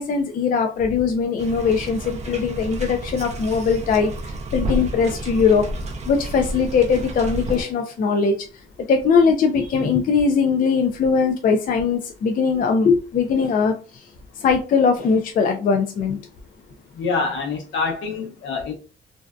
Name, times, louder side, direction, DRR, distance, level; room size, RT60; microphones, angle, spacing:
voice 1, 0.0-4.1 4.5-5.7 6.1-8.4 8.9-14.0 14.4-16.2, left 5 dB, 45° left, 0.4 m, -20 dB
sound 1, 1.4-7.6, right 1 dB, 35° right, 0.5 m, -30 dB
voice 2, 16.9-18.7, left 4 dB, 70° left, 0.8 m, -25 dB
2.5 x 2.2 x 2.2 m
cardioid pair, 90°, 20 cm